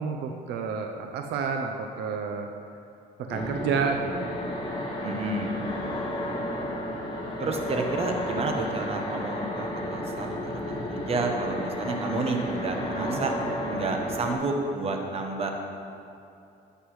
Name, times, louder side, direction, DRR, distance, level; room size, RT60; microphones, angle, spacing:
voice 1, 0.0-2.5 3.3-4.4 12.9-13.2, right 5 dB, 80° right, 3 dB, 0.7 m, -30 dB
sound 1, 3.3-14.3, left 1 dB, 25° left, 1.9 m, -32 dB
voice 2, 5.0-5.5 7.4-13.3 13.7-15.5, right 3 dB, 35° right, 2 dB, 1.1 m, -30 dB
11.5 x 8.0 x 3.2 m, 2.6 s
cardioid pair, 110°, 17 cm